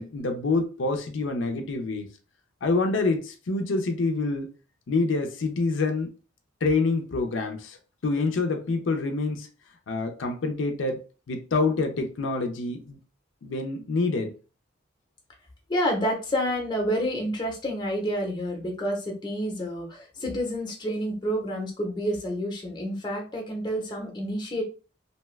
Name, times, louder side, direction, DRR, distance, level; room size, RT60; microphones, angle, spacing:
voice 1, 0.0-2.1 2.6-4.5 4.9-6.1 6.6-7.8 8.0-9.5 9.9-11.0 11.3-13.0 13.4-14.3, left 3 dB, 80° left, 0.5 m, -26 dB
voice 2, 15.7-24.6, equal, 25° left, 0.7 m, -29 dB
2.7 x 2.2 x 3.1 m
head